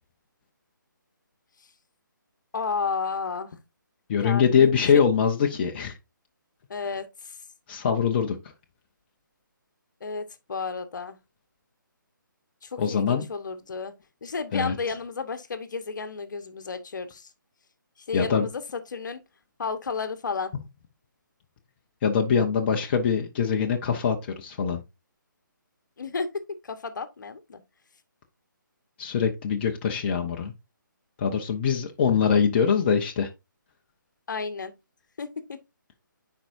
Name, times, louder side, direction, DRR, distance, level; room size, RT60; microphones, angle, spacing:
voice 1, 2.5-3.6 4.2-5.0 6.7-7.4 10.0-11.2 12.6-13.9 14.2-17.3 18.0-19.2 19.6-20.5 26.0-26.3 26.6-27.6 34.3-34.7 35.2-35.6, left 5 dB, 65° left, 1.1 m, -32 dB
voice 2, 4.1-6.0 7.7-8.4 12.8-13.3 14.5-14.7 18.1-18.5 22.0-24.8 29.0-30.5 31.2-33.3, left 7 dB, 30° left, 0.7 m, -23 dB
10.0 x 4.5 x 2.6 m
figure-of-eight pair, 155°, 11 cm